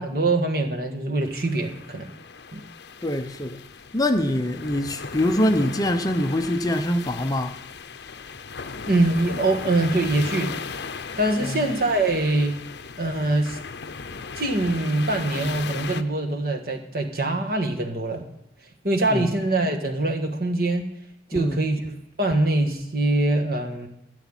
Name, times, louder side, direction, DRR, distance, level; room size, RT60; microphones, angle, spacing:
voice 1, 0.0-2.1 2.5-2.6 8.9-10.5 11.2-12.6 13.0-13.6 14.3-18.3 18.8-20.9 21.3-23.9, right 2 dB, 55° right, 1.6 m, -23 dB
sound 1, 1.2-16.0, left 5 dB, 65° left, 0.7 m, -37 dB
voice 2, 3.0-3.6 3.9-7.6 11.4-11.7 19.1-19.3 21.3-21.6, left 1 dB, 20° left, 0.7 m, -24 dB
13.5 x 7.1 x 9.1 m
head